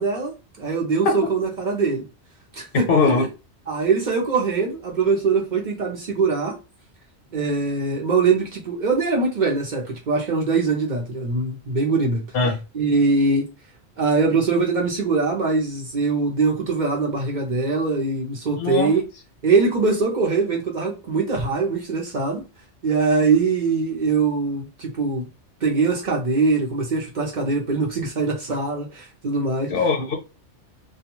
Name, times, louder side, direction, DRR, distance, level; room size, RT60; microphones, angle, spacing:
voice 1, 0.0-2.1 2.5-3.3 3.7-6.6 7.3-12.2 12.7-13.4 14.0-19.0 19.4-22.4 22.8-25.3 25.6-29.7, right 4 dB, 50° right, 0.6 m, -22 dB
voice 2, 2.7-3.3 12.3-12.6 18.5-18.9 29.7-30.2, left 4 dB, 60° left, 0.7 m, -20 dB
2.3 x 2.2 x 2.9 m
omnidirectional pair, 1.2 m